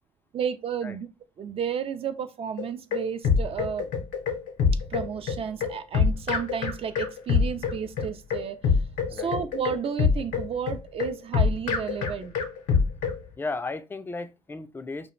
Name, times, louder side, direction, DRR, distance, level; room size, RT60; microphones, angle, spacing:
voice 1, 0.3-1.1 1.4-3.9 4.9-8.6 9.1-12.3, right 7 dB, 45° right, 0.4 m, -32 dB
sound 1, 2.6-13.2, left 5 dB, 75° left, 0.6 m, -25 dB
voice 2, 13.4-15.1, left 3 dB, 15° left, 0.3 m, -34 dB
2.3 x 2.1 x 3.0 m
hypercardioid pair, 60°, 13 cm